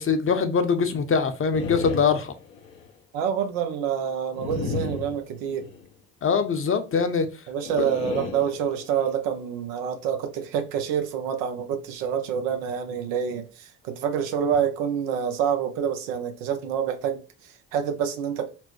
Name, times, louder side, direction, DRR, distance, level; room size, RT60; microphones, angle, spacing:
voice 1, 0.0-2.3 6.2-7.3 7.8-7.9, left 5 dB, 35° left, 0.7 m, -23 dB
sound 1, 1.5-2.9 4.3-5.8 7.6-9.1, left 5 dB, 75° left, 0.9 m, -34 dB
voice 2, 3.1-5.7 7.5-18.5, right 8 dB, 90° right, 0.7 m, -27 dB
4.3 x 2.1 x 3.0 m
supercardioid pair, 60°, 35 cm